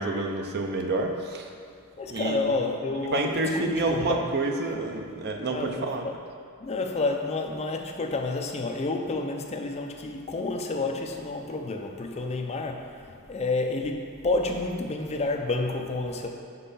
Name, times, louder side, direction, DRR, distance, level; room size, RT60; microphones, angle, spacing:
voice 1, 0.0-1.5 2.1-2.5 3.1-6.1, right 2 dB, 45° right, 3 dB, 0.5 m, -28 dB
voice 2, 2.0-4.3 5.5-6.2 6.6-16.3, left 3 dB, 30° left, 3 dB, 0.4 m, -30 dB
5.5 x 5.4 x 4.1 m, 2.3 s
head